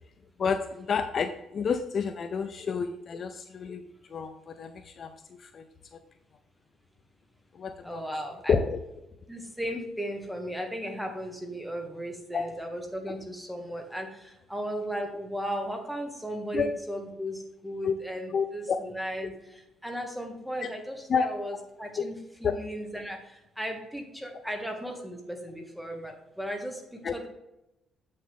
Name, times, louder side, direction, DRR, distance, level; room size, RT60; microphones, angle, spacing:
voice 1, 0.4-3.8 4.1-5.1 5.4-5.6 7.6-8.1 8.5-8.8 12.3-12.4 16.5-16.7 17.8-17.9 18.3-18.8 20.6-20.7 21.1-21.3 22.4-22.5 27.0-27.1, left 6 dB, 40° left, 8 dB, 0.5 m, -29 dB
voice 2, 7.8-8.5 9.3-14.1 14.5-19.3 19.8-23.2 23.6-27.3, equal, ahead, 3 dB, 1.5 m, -36 dB
7.8 x 6.5 x 3.7 m, 0.92 s
cardioid pair, 130°, 0 cm